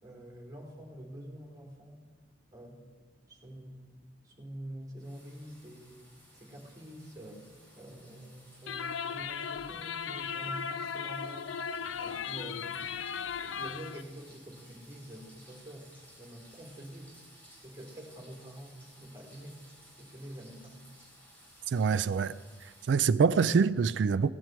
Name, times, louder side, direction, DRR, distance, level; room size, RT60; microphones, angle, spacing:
voice 1, 0.0-2.0 2.5-2.8 3.3-3.9 4.2-6.0 6.3-7.5 7.8-11.6 12.0-12.7 13.4-15.9 16.2-17.2 17.6-19.6 20.0-20.8, right 1 dB, 20° right, 2.9 m, -46 dB
sound 1, 5.0-22.9, equal, 10° left, 4.1 m, -58 dB
sound 2, 8.7-14.0, left 6 dB, 90° left, 0.5 m, -37 dB
voice 2, 21.7-22.3 22.6-24.3, right 5 dB, 70° right, 0.3 m, -25 dB
16.5 x 11.0 x 4.5 m
head